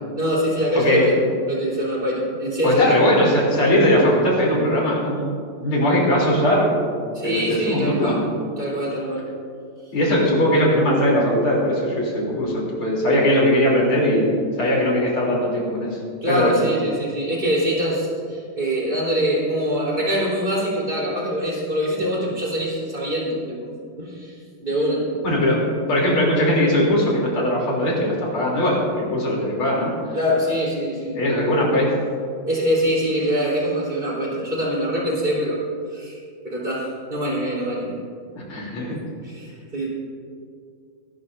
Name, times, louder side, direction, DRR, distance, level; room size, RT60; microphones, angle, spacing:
voice 1, 0.1-3.0 7.1-8.2 8.6-9.2 16.2-23.7 24.0-24.3 24.6-25.0 30.1-31.2 32.5-35.6 35.9-36.2 36.4-38.0 38.9-39.9, equal, 25° right, -5 dB, 4.1 m, -24 dB
voice 2, 0.7-1.1 2.6-5.3 5.6-6.9 7.2-8.3 9.9-14.3 14.6-16.0 16.3-16.6 25.2-29.9 31.2-31.9 38.3-39.0, left 1 dB, 85° left, -3 dB, 4.3 m, -20 dB
23.5 x 12.5 x 2.7 m, 2.3 s
omnidirectional pair, 2.3 m